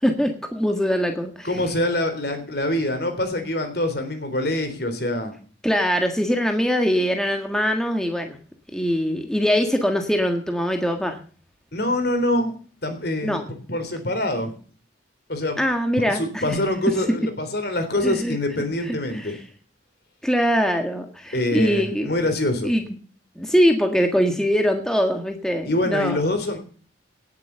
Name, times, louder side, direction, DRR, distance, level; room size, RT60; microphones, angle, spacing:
voice 1, 0.0-1.5 5.6-8.4 8.7-11.2 13.2-13.4 15.6-16.6 18.0-18.4 18.8-19.4 20.2-22.1 22.6-22.8 23.3-26.3, equal, 5° left, 4 dB, 1.6 m, -22 dB
voice 2, 1.4-5.3 11.7-12.5 12.8-13.3 13.7-14.6 15.3-15.6 16.1-19.4 21.3-22.7 25.6-26.6, left 1 dB, 55° left, 8 dB, 3.6 m, -25 dB
18.0 x 8.1 x 6.9 m, 0.42 s
head